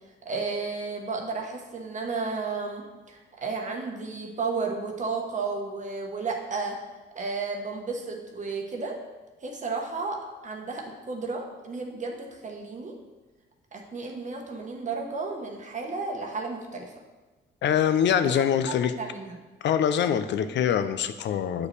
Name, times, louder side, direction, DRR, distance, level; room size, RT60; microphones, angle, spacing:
voice 1, 0.2-6.8 7.1-9.0 9.4-12.9 13.7-16.9 18.2-19.3, right 4 dB, 40° right, 1 dB, 1.0 m, -33 dB
voice 2, 17.6-18.9 19.6-21.7, left 9 dB, 65° left, 11 dB, 0.5 m, -24 dB
8.3 x 5.0 x 3.2 m, 1.2 s
cardioid pair, 90°, 20 cm